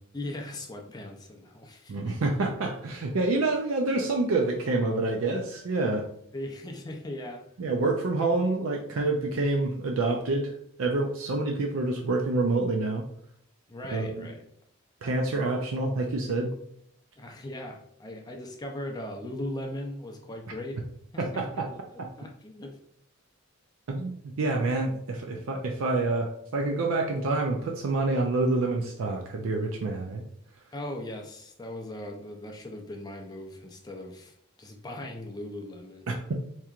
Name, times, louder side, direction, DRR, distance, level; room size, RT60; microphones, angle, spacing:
voice 1, 0.1-2.6 6.3-7.5 13.7-14.5 17.2-20.9 21.1-22.8 30.7-36.1, left 1 dB, 20° left, 2 dB, 0.4 m, -39 dB
voice 2, 1.9-6.1 7.6-10.5 10.8-13.0 13.9-14.3 15.0-16.5 21.2-21.7 23.9-30.2 36.1-36.2, right 2 dB, 70° right, 2 dB, 0.4 m, -27 dB
4.6 x 2.8 x 2.4 m, 0.69 s
head